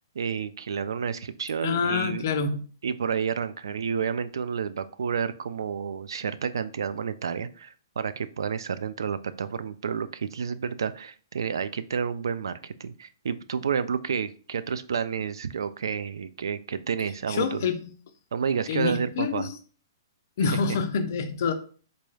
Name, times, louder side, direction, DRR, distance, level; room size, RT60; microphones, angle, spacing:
voice 1, 0.2-2.3 2.8-17.7 18.3-19.5, right 6 dB, 85° right, 0.3 m, -30 dB
voice 2, 1.6-2.7 17.3-17.8 18.7-19.6 20.4-21.5, left 5 dB, 40° left, 0.4 m, -27 dB
3.9 x 2.3 x 3.2 m
hypercardioid pair, 175°, 2 cm